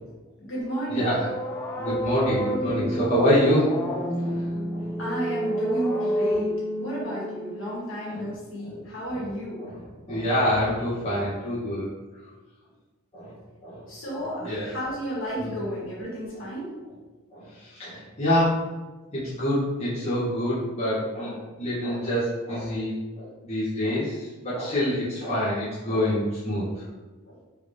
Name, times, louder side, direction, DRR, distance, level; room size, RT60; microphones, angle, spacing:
voice 1, 0.4-1.2 5.0-6.5 6.8-9.6 13.9-16.7, equal, 60° left, -7 dB, 1.4 m, -32 dB
sound 1, 0.6-8.4, equal, 10° left, 0.4 m, -30 dB
voice 2, 0.9-1.3 1.8-3.8 4.2-5.0 8.1-8.3 8.6-8.8 9.1-9.3 9.6-11.9 13.1-13.9 14.4-14.7 15.4-15.5 17.3-18.6 19.1-26.8 27.3-27.4, equal, 30° left, -11 dB, 0.8 m, -26 dB
3.3 x 3.2 x 2.5 m, 1.2 s
head